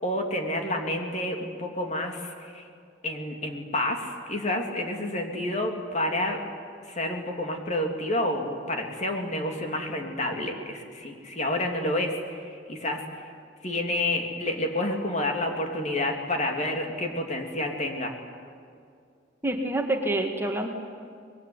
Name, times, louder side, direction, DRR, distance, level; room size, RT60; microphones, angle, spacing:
voice 1, 0.0-2.7 3.0-6.4 6.8-13.2 13.6-18.1, left 1 dB, 40° left, 3 dB, 3.0 m, -29 dB
voice 2, 19.4-20.7, right 1 dB, 15° right, 2 dB, 1.9 m, -27 dB
25.0 x 21.5 x 9.8 m, 2.3 s
head